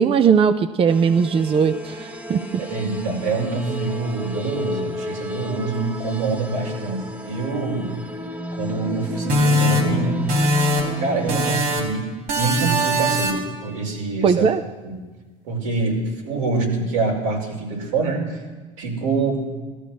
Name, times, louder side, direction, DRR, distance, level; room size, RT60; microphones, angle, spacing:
voice 1, 0.0-2.6 14.2-14.6, right 6 dB, 35° right, 10 dB, 0.7 m, -19 dB
sound 1, 0.9-11.6, left 1 dB, 10° right, 1.4 m, -32 dB
voice 2, 2.6-7.9 8.6-10.2 11.0-14.5 14.8-15.0 15.5-18.4 18.8-19.4, right 3 dB, 90° right, -1 dB, 5.3 m, -25 dB
sound 2, 9.3-11.0 11.3-12.0 12.3-13.6, equal, 65° right, 3.9 m, -21 dB
16.5 x 13.5 x 6.2 m, 1.3 s
supercardioid pair, 100°, 16 cm